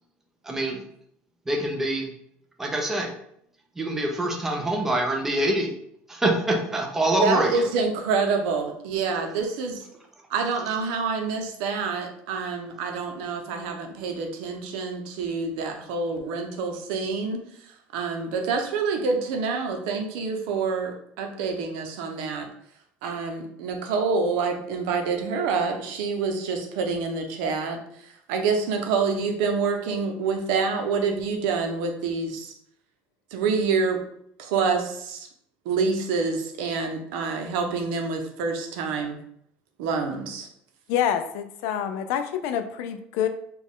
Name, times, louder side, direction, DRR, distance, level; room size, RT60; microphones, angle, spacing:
voice 1, 0.4-0.8 1.5-2.1 2.6-3.1 3.8-5.7 6.1-7.7, right 1 dB, 10° right, 1 dB, 0.5 m, -25 dB
voice 2, 7.2-9.8 10.3-17.4 17.9-22.5 23.0-32.5 33.3-34.0 34.4-35.3 35.6-39.2 39.8-40.5, right 4 dB, 85° right, 4 dB, 0.7 m, -27 dB
voice 3, 40.9-43.3, left 9 dB, 70° left, 9 dB, 0.4 m, -27 dB
4.2 x 2.4 x 3.6 m, 0.71 s
cardioid pair, 175°, 5 cm